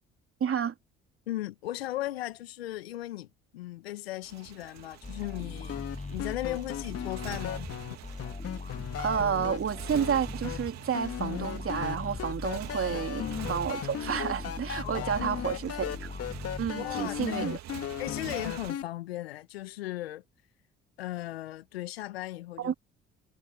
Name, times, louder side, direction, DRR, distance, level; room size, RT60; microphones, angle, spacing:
voice 1, 0.4-0.7 9.0-16.1 16.6-17.6 22.6-22.7, right 8 dB, 45° right, 3.3 m, -30 dB
voice 2, 1.3-5.8 6.1-7.7 12.9-13.1 14.8-15.6 16.7-17.5 18.0-20.2 21.0-22.7, left 15 dB, 85° left, 1.8 m, -37 dB
Motorcycle, 4.2-18.7, right 13 dB, 65° right, 2.5 m, -46 dB
sound 1, 5.0-17.3, left 3 dB, 25° left, 6.7 m, -40 dB
sound 2, 5.7-9.6 9.9-10.6 10.9-18.8, left 10 dB, 50° left, 2.0 m, -36 dB
hypercardioid pair, 50°, 30 cm